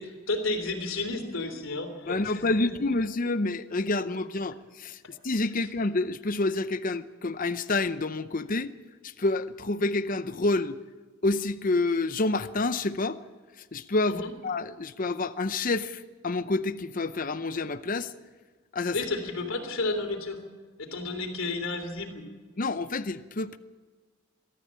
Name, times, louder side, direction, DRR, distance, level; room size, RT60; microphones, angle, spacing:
voice 1, 0.0-2.7 14.1-14.3 18.9-20.4 20.8-22.3, left 2 dB, 65° left, 6 dB, 3.3 m, -32 dB
voice 2, 2.1-8.7 9.0-10.8 11.2-13.2 13.7-18.1 18.7-19.0 22.6-23.6, left 2 dB, 40° left, 12 dB, 0.7 m, -28 dB
23.0 x 13.5 x 8.7 m, 1.4 s
head